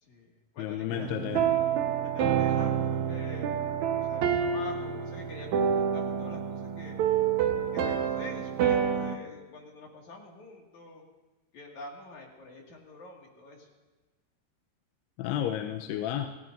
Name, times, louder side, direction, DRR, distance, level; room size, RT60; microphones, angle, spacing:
voice 1, 0.0-1.1 2.0-7.0 7.7-11.0 11.5-13.7, left 2 dB, 50° left, -1 dB, 3.1 m, -46 dB
voice 2, 0.6-1.5 15.2-16.3, left 11 dB, 90° left, 5 dB, 2.8 m, -32 dB
sound 1, 0.9-9.2, right 8 dB, 70° right, 1.8 m, -28 dB
28.0 x 17.0 x 2.6 m, 1.2 s
omnidirectional pair, 4.7 m